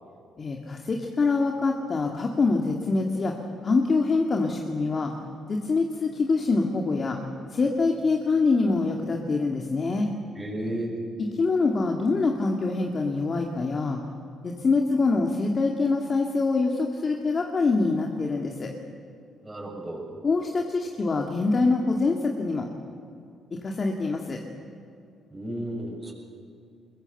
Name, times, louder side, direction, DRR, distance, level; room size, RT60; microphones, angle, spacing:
voice 1, 0.4-3.3 3.6-5.1 5.5-7.2 7.5-10.1 11.2-14.0 14.4-18.7 20.2-22.7 23.5-24.4, left 3 dB, 40° left, 2 dB, 2.2 m, -25 dB
voice 2, 10.4-10.9 19.4-20.0 25.3-26.1, right 1 dB, 20° right, -1 dB, 6.9 m, -33 dB
23.5 x 22.0 x 8.1 m, 2.5 s
cardioid pair, 90°, 0 cm